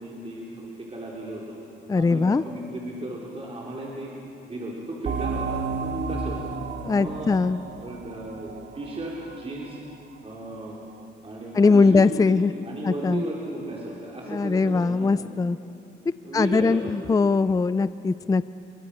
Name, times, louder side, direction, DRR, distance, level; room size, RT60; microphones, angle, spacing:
voice 1, 0.0-1.6 1.9-4.1 4.4-6.5 6.9-7.3 7.8-9.8 10.2-10.8 11.2-15.1 16.2-17.4, right 1 dB, 30° right, -4 dB, 4.6 m, -35 dB
voice 2, 1.9-2.4 6.8-7.6 11.5-12.5 12.8-13.2 14.3-15.6 16.3-18.4, left 4 dB, 20° left, 15 dB, 0.5 m, -21 dB
sound 1, 5.0-10.3, right 4 dB, 60° right, 1.8 m, -33 dB
30.0 x 24.5 x 6.5 m, 2.8 s
cardioid pair, 90°, 20 cm